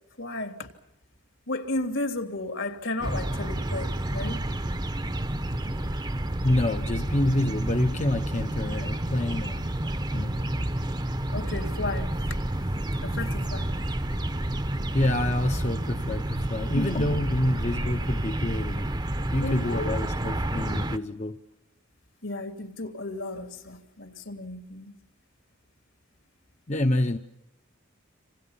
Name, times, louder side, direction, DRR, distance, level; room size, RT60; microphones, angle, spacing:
voice 1, 0.2-0.7 1.5-4.4 11.3-12.1 13.0-13.7 16.7-17.1 19.4-20.0 22.2-24.9, left 2 dB, 70° left, 2.9 m, -33 dB
sound 1, 3.0-21.0, right 1 dB, 20° right, 0.9 m, -30 dB
voice 2, 6.4-9.7 10.1-10.4 14.9-19.0 19.3-21.4 26.7-27.2, left 1 dB, 35° left, 0.9 m, -27 dB
27.5 x 27.5 x 5.7 m
head